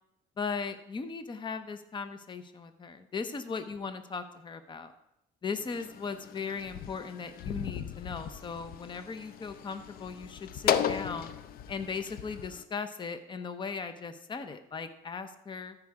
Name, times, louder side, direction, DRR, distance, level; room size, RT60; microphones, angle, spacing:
voice 1, 0.4-4.9 5.4-11.3 11.7-15.8, left 5 dB, 30° left, 10 dB, 0.8 m, -38 dB
sound 1, 5.6-12.6, left 9 dB, 60° left, 0.6 m, -36 dB
14.0 x 4.9 x 4.8 m, 0.81 s
cardioid pair, 110°, 17 cm